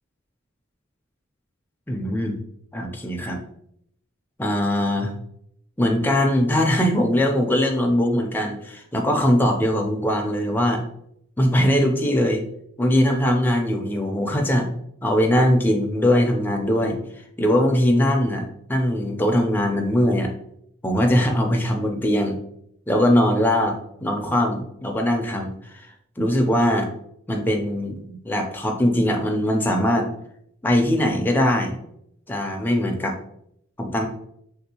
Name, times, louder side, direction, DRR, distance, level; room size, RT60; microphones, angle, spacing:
voice 1, 1.9-2.4 2.7-3.4 4.4-5.1 5.8-10.8 11.4-12.4 12.8-14.7 15.0-17.0 17.4-20.3 20.8-22.4 22.9-26.9 27.3-30.1 30.6-31.8 32.3-33.1 33.8-34.1, left 1 dB, 10° left, 2 dB, 0.4 m, -21 dB
3.5 x 2.6 x 2.8 m, 0.73 s
head